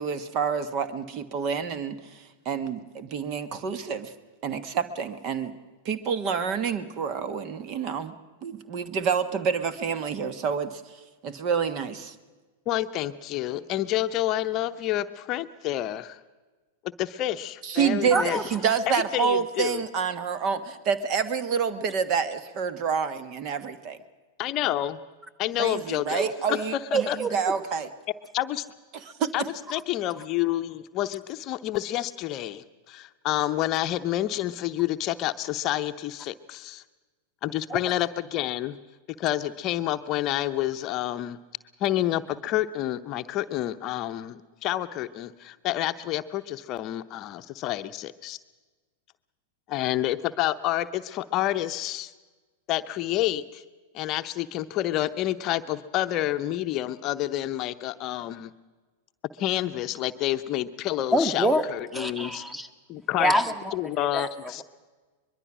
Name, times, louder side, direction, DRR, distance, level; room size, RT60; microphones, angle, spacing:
voice 1, 0.0-4.1 4.4-5.6 5.8-8.1 8.4-10.8 11.2-12.1 17.6-24.0 25.6-27.9 28.9-29.3, right 6 dB, 40° right, 13 dB, 1.4 m, -28 dB
voice 2, 12.7-16.2 17.0-18.4 19.1-19.8 24.4-25.0 25.4-26.6 26.9-27.2 28.3-28.6 29.3-29.4 29.7-36.8 37.4-38.8 39.2-41.4 41.8-48.4 49.7-52.1 52.7-53.6 53.9-58.5 59.4-62.4 62.9-63.3 63.7-64.6, left 13 dB, 40° left, 10 dB, 0.8 m, -29 dB
voice 3, 18.1-18.4 26.2-26.3 26.9-27.4 37.7-37.8 61.1-61.6 61.9-62.7 63.2-64.3, right 1 dB, 5° right, 12 dB, 1.6 m, -25 dB
23.0 x 22.0 x 6.2 m, 1.3 s
figure-of-eight pair, 95°, 0 cm